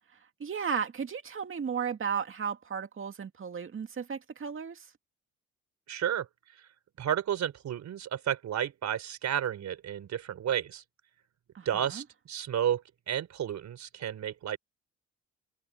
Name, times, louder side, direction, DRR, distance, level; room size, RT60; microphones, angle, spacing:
voice 1, 0.4-4.9 11.5-12.0, right 6 dB, 45° right, 2.3 m, -34 dB
voice 2, 5.9-6.3 7.0-10.8 11.7-14.6, right 10 dB, 65° right, 3.9 m, -32 dB
cardioid pair, 90°, 30 cm